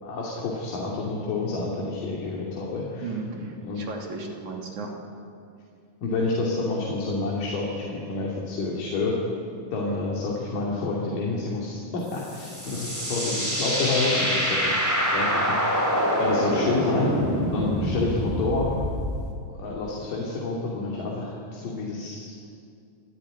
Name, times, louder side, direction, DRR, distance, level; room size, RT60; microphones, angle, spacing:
voice 1, 0.0-3.8 6.0-9.2 9.7-15.8 16.1-18.7 19.6-22.5, left 3 dB, 90° left, -3 dB, 4.4 m, -29 dB
voice 2, 3.0-4.9 16.5-16.7, right 4 dB, 65° right, 1 dB, 4.2 m, -35 dB
sound 1, 12.1-19.3, equal, 5° right, 3.5 m, -26 dB
28.0 x 14.0 x 9.9 m, 2.4 s
omnidirectional pair, 3.7 m